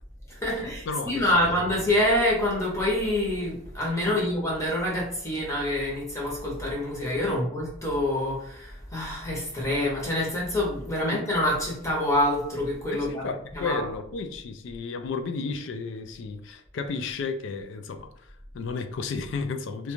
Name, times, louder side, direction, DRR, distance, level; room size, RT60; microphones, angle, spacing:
voice 1, 0.3-13.3 13.5-13.8, left 1 dB, 15° left, -4 dB, 0.7 m, -26 dB
voice 2, 0.9-1.7 4.1-4.3 7.3-7.4 11.0-11.2 12.9-19.9, left 4 dB, 65° left, 8 dB, 0.3 m, -33 dB
2.4 x 2.2 x 2.9 m, 0.71 s
head